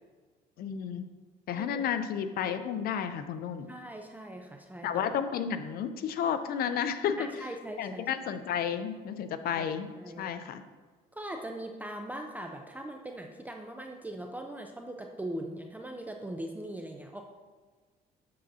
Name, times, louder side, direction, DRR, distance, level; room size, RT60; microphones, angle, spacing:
voice 1, 0.6-1.1 1.5-3.7 4.8-7.2 7.8-10.6, left 8 dB, 65° left, 10 dB, 0.5 m, -32 dB
voice 2, 1.5-1.9 3.7-5.2 7.2-8.1 9.5-9.7 10.0-10.3 11.1-17.2, right 1 dB, 10° right, 3 dB, 0.5 m, -40 dB
7.5 x 7.2 x 2.7 m, 1.4 s
cardioid pair, 110°, 17 cm